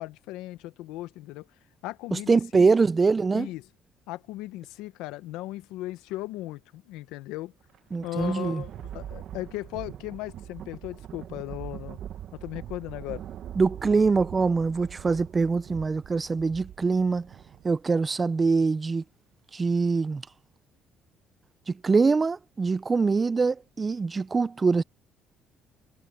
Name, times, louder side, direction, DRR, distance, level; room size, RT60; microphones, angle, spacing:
voice 1, 0.0-1.5 1.8-2.7 3.3-3.6 4.1-7.5 8.0-12.0 12.3-13.2, left 17 dB, 85° left, 1.1 m, -37 dB
voice 2, 2.1-3.5 7.9-8.6 13.6-17.3 17.6-19.0 19.5-20.2 21.7-24.8, right 4 dB, 30° right, 0.6 m, -24 dB
Thunder, 7.6-18.3, right 10 dB, 65° right, 1.4 m, -42 dB
supercardioid pair, 80°, 0 cm